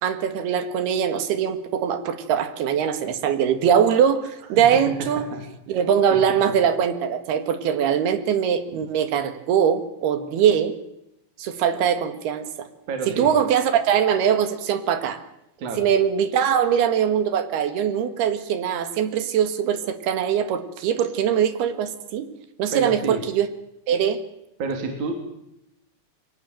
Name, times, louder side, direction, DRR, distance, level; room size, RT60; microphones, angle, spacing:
voice 1, 0.0-5.3 5.7-10.8 11.4-12.7 13.1-15.2 15.8-22.3 22.6-23.5 23.9-24.2, right 8 dB, 65° right, 10 dB, 3.5 m, -22 dB
voice 2, 12.9-13.3 15.6-15.8 22.7-23.2 24.6-25.1, right 3 dB, 45° right, 4 dB, 4.3 m, -29 dB
23.0 x 18.0 x 9.1 m, 0.85 s
omnidirectional pair, 5.3 m